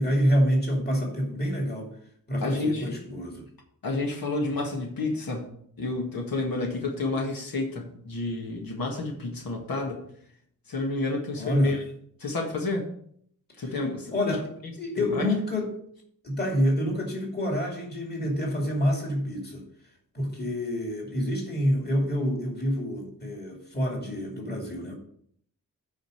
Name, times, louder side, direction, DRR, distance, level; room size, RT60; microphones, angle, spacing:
voice 1, 0.0-1.9 2.3-3.5 11.4-11.8 13.6-13.7 14.1-14.5 14.8-15.8 16.2-19.6 20.1-24.9, equal, 30° left, 2.6 m, -27 dB
voice 2, 2.4-3.0 3.8-5.5 5.8-10.0 10.7-11.8 12.2-12.9 13.6-14.1 15.0-15.3, left 2 dB, 80° left, 1.8 m, -30 dB
9.1 x 5.2 x 6.5 m
wide cardioid pair, 160°, 34 cm